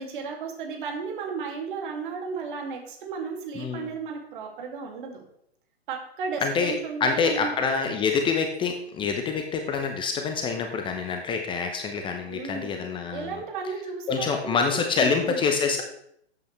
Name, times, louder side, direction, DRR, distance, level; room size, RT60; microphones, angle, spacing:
voice 1, 0.0-5.2 5.9-7.5 12.3-15.4, right 5 dB, 50° right, 2 dB, 2.5 m, -34 dB
voice 2, 3.6-3.9 6.4-6.7 7.0-13.3 14.1-15.8, left 5 dB, 15° left, 5 dB, 0.8 m, -26 dB
13.5 x 8.2 x 3.3 m, 0.71 s
figure-of-eight pair, 110°, 33 cm